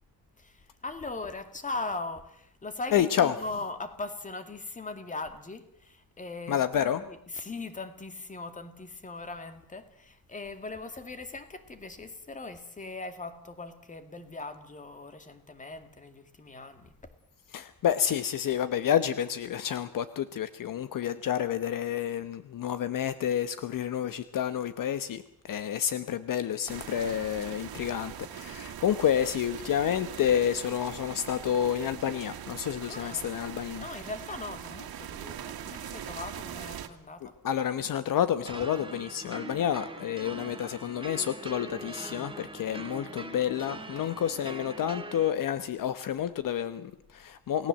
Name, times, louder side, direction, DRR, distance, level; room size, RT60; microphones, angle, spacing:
voice 1, 0.4-16.9 32.9-33.3 33.8-37.4, left 3 dB, 20° left, 9 dB, 2.3 m, -40 dB
voice 2, 2.9-3.3 6.5-7.0 17.5-33.8 37.4-47.7, left 9 dB, 60° left, 12 dB, 1.1 m, -29 dB
sound 1, 26.7-36.9, right 10 dB, 75° right, 2.2 m, -42 dB
sound 2, 38.5-45.3, right 3 dB, 15° right, 1.4 m, -42 dB
29.0 x 18.5 x 7.6 m, 0.71 s
wide cardioid pair, 165°, 37 cm